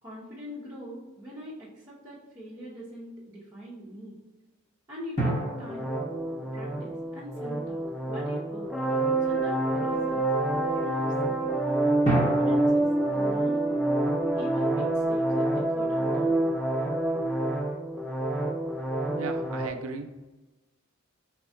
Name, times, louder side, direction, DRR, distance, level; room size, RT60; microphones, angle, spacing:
voice 1, 0.0-4.2 4.9-5.9 6.5-7.8 8.1-8.7 9.2-10.3 10.7-11.6 12.0-12.9 13.1-13.8 14.3-16.4, equal, 15° right, -11 dB, 0.8 m, -42 dB
sound 1, 0.8-1.5 5.2-8.0 12.0-15.3, right 1 dB, 35° left, 1.0 m, -33 dB
sound 2, 5.7-19.7, right 2 dB, ahead, 0.4 m, -27 dB
voice 2, 19.1-20.3, right 4 dB, 75° right, 7 dB, 0.4 m, -37 dB
3.5 x 2.3 x 4.1 m, 1.1 s
head